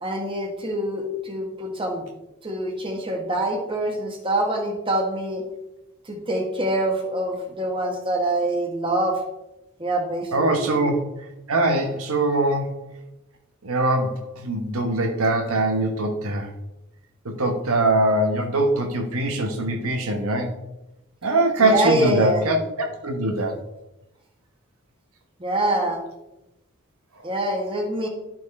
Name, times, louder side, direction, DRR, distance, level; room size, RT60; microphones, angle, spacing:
voice 1, 0.0-2.0 2.4-5.4 6.1-9.2 9.8-10.8 21.6-22.4 25.4-26.0 27.2-28.1, right 1 dB, 25° right, 1 dB, 1.4 m, -25 dB
voice 2, 10.3-11.0 11.5-12.8 13.6-16.5 17.2-20.5 21.2-23.6, right 2 dB, 80° right, 3 dB, 1.2 m, -22 dB
12.0 x 4.6 x 4.2 m, 0.92 s
head